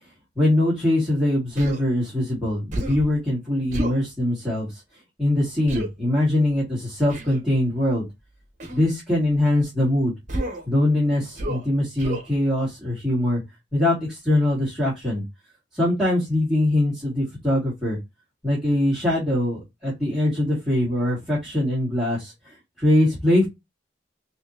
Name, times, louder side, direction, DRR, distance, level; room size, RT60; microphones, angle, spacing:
voice 1, 0.4-4.8 5.2-8.1 8.7-10.1 10.7-13.4 13.7-15.2 15.7-18.0 18.4-23.5, left 1 dB, ahead, -9 dB, 1.9 m, -22 dB
Human voice, 1.6-1.8 2.7-3.1 3.7-4.0 5.7-5.9 7.1-7.4 8.6-8.9 10.3-10.7 11.3-11.7 12.0-12.3, right 1 dB, 40° right, 1.1 m, -30 dB
4.0 x 3.0 x 2.7 m, 0.20 s
head